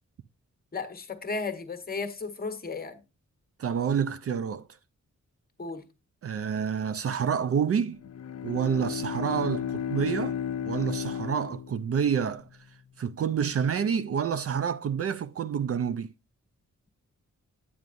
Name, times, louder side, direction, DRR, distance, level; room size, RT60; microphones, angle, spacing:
voice 1, 0.7-3.0 5.6-5.8, left 4 dB, 30° left, 1.2 m, -34 dB
voice 2, 3.6-4.7 6.2-8.0 8.4-10.4 10.7-12.5 13.0-16.1, right 7 dB, 50° right, 0.4 m, -28 dB
Bowed string instrument, 7.9-12.3, left 8 dB, 60° left, 0.5 m, -34 dB
9.2 x 8.5 x 2.5 m
wide cardioid pair, 140°, 30 cm